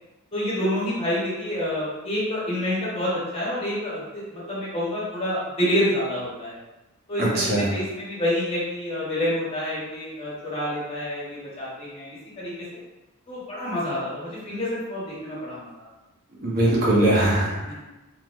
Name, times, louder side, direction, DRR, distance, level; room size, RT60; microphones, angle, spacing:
voice 1, 0.3-6.6 7.1-12.5 13.3-15.9 17.6-17.7, left 1 dB, 25° left, -8 dB, 1.4 m, -28 dB
voice 2, 16.4-17.7, right 1 dB, 45° right, -7 dB, 1.2 m, -21 dB
3.6 x 2.9 x 3.2 m, 1.1 s
head